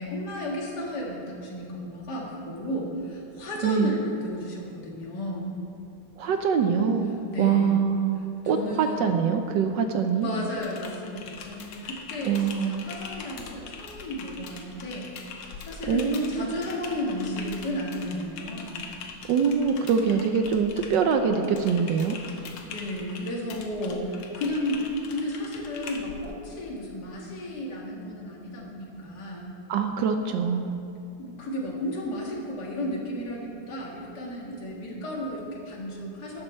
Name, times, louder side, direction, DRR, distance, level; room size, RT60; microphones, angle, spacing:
voice 1, 0.0-5.5 7.3-7.8 8.1-8.3 8.5-9.0 10.2-15.2 15.6-18.8 22.4-29.5 31.2-36.4, left 1 dB, 55° left, -3 dB, 2.4 m, -33 dB
voice 2, 3.6-3.9 6.2-10.3 12.2-12.8 15.9-16.6 19.3-22.2 29.7-30.8, right 6 dB, 70° right, 6 dB, 1.2 m, -24 dB
Typing, 10.6-26.2, left 4 dB, 90° left, 1.8 m, -42 dB
13.0 x 9.0 x 4.3 m, 2.5 s
omnidirectional pair, 2.2 m